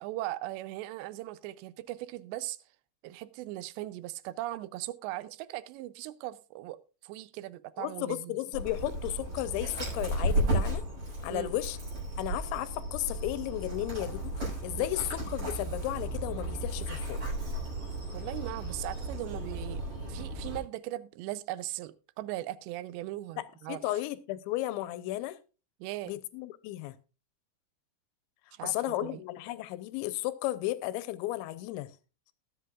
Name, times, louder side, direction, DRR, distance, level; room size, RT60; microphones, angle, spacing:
voice 1, 0.0-2.6 3.0-6.8 7.0-8.3 11.3-11.5 14.8-14.9 18.1-19.8 20.1-23.8 25.8-26.1 28.5-29.2, right 16 dB, 80° right, 2.7 m, -39 dB
voice 2, 7.8-10.8 11.2-11.8 12.2-14.3 14.6-17.2 23.4-25.4 26.1-27.0 28.6-31.9, left 16 dB, 80° left, 3.0 m, -34 dB
Dog, 8.5-20.6, right 1 dB, 30° right, 6.9 m, -34 dB
20.0 x 7.8 x 2.4 m
omnidirectional pair, 5.3 m